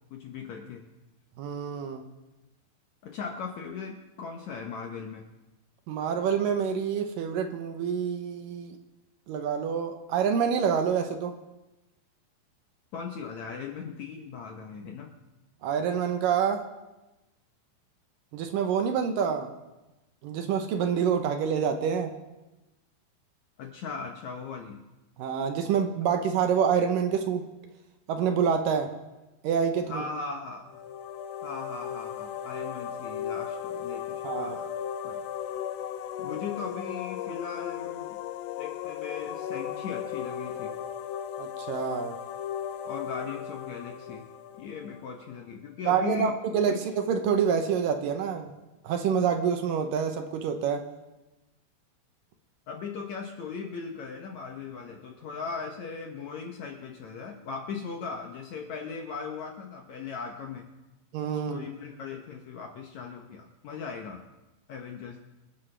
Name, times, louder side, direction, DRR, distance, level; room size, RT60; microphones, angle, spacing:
voice 1, 0.1-0.9 3.0-5.3 12.9-15.1 23.6-24.8 29.9-30.8 31.4-34.7 35.0-35.2 36.2-38.2 38.6-40.8 42.8-44.3 44.6-46.4 46.7-46.9 52.7-60.7 61.5-64.2 64.7-65.2, left 5 dB, 70° left, 2 dB, 1.8 m, -38 dB
voice 2, 1.4-2.1 5.9-8.8 9.3-11.3 15.6-16.6 18.3-19.5 20.2-22.1 25.2-27.4 28.1-28.9 29.4-30.0 34.2-34.6 41.4-42.2 45.9-48.5 48.8-50.8 61.1-61.7, right 7 dB, 75° right, 6 dB, 2.3 m, -27 dB
sound 1, 30.7-45.3, left 9 dB, 90° left, 1.8 m, -36 dB
26.0 x 9.8 x 3.3 m, 1.0 s
omnidirectional pair, 4.4 m